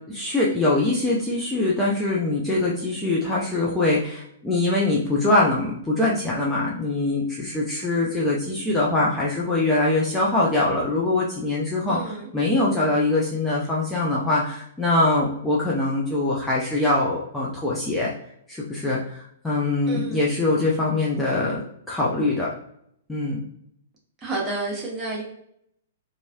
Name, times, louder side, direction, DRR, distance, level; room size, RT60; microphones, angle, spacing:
voice 1, 0.1-18.1 18.5-21.6 21.9-22.5 23.1-23.4, left 2 dB, 10° left, -6 dB, 0.6 m, -23 dB
voice 2, 11.9-12.3 19.9-20.4 24.2-25.2, right 3 dB, 20° right, -3 dB, 1.1 m, -30 dB
3.0 x 2.6 x 2.3 m, 0.71 s
figure-of-eight pair, 115°, 0 cm